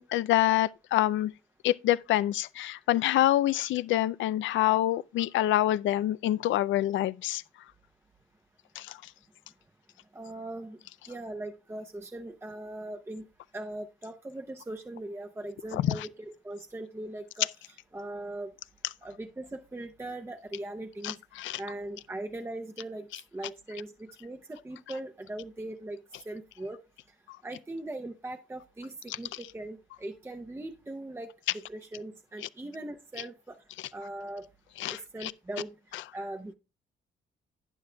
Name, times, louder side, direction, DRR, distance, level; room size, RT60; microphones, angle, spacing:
voice 1, 0.0-1.3 1.6-7.4 8.8-9.0 15.7-16.1 21.0-21.6 34.8-35.3, left 14 dB, 75° left, 0.4 m, -26 dB
voice 2, 10.1-10.8 11.1-13.2 13.5-18.5 19.0-21.2 21.6-26.0 26.3-26.8 27.4-33.6 33.9-34.5 34.9-35.7 36.1-36.5, right 1 dB, 15° right, 0.7 m, -40 dB
11.5 x 8.8 x 2.2 m
cardioid pair, 90°, 20 cm